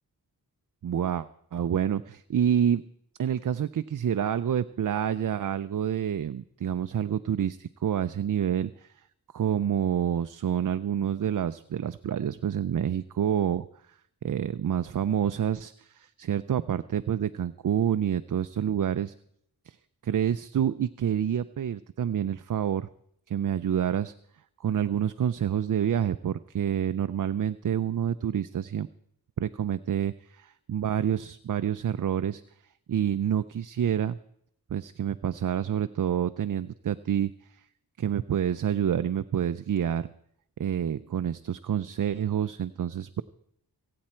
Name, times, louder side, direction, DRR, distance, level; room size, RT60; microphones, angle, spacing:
voice 1, 0.8-2.8 3.2-9.1 9.3-13.7 14.2-19.1 19.7-19.8 20.0-22.9 23.3-24.1 24.6-28.9 29.4-32.4 32.9-34.2 34.7-37.6 38.0-40.1 40.6-43.2, right 9 dB, 55° right, 12 dB, 0.5 m, -28 dB
25.5 x 8.6 x 4.4 m, 0.72 s
wide cardioid pair, 60°, 38 cm